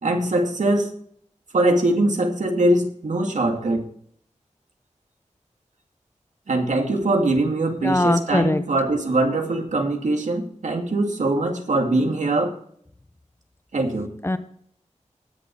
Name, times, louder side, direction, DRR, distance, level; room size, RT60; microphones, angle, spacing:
voice 1, 0.0-0.9 1.5-3.8 6.5-12.5 13.7-14.1, right 2 dB, 80° right, 3 dB, 2.4 m, -22 dB
voice 2, 7.8-8.6 14.2-14.4, left 1 dB, 20° left, 11 dB, 1.0 m, -20 dB
19.5 x 7.0 x 4.7 m, 0.62 s
wide cardioid pair, 95°, 12 cm